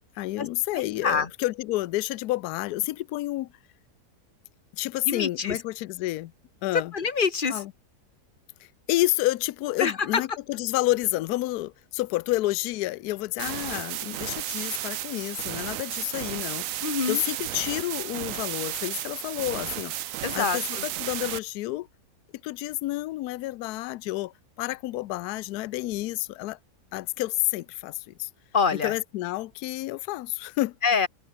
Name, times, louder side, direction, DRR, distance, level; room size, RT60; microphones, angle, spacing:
voice 1, 0.2-3.5 4.7-6.3 6.6-6.9 7.5-7.7 8.6-16.8 17.1-19.9 20.3-21.9 22.4-26.6 26.9-28.3 28.8-30.8, left 17 dB, 75° left, 1.1 m, -29 dB
voice 2, 0.7-1.3 5.0-5.6 6.7-7.6 9.8-10.2 16.8-17.2 20.2-20.9 28.5-28.9 30.8-31.1, left 5 dB, 35° left, 1.4 m, -26 dB
sound 1, 13.4-21.4, right 14 dB, 65° right, 0.9 m, -33 dB
omnidirectional pair, 1.7 m